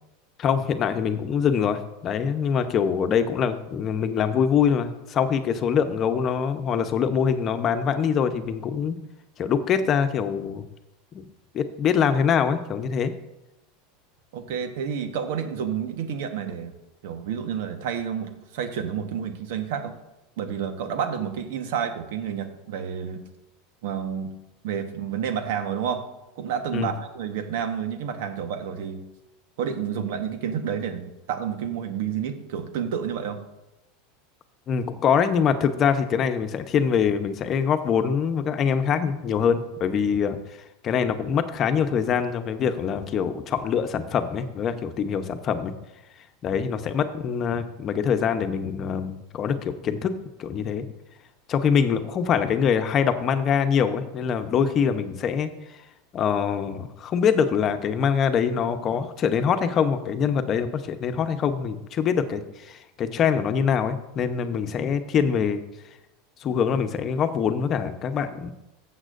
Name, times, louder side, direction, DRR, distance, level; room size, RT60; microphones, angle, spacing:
voice 1, 0.4-9.0 9.4-10.6 11.1-11.2 11.5-13.1 26.7-26.9 34.7-40.4 40.8-45.7 46.4-50.1 50.4-50.8 51.5-55.5 56.1-65.6 66.4-68.5, left 7 dB, 40° left, 9 dB, 0.9 m, -24 dB
voice 2, 14.3-16.7 17.0-20.0 20.4-23.2 23.8-24.4 24.6-26.1 26.4-29.0 29.6-33.4, right 8 dB, 70° right, 7 dB, 1.2 m, -30 dB
14.5 x 7.5 x 2.6 m, 0.95 s
hypercardioid pair, 105°, 0 cm